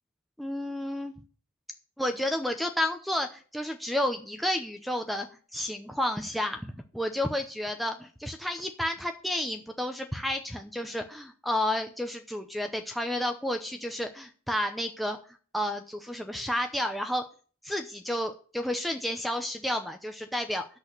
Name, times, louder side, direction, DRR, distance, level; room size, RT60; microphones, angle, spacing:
voice 1, 0.4-1.1 2.0-5.3 5.5-6.7 6.9-15.2 15.5-17.2 17.6-20.7, left 1 dB, ahead, 4 dB, 0.7 m, -31 dB
8.2 x 6.4 x 8.0 m, 0.41 s
head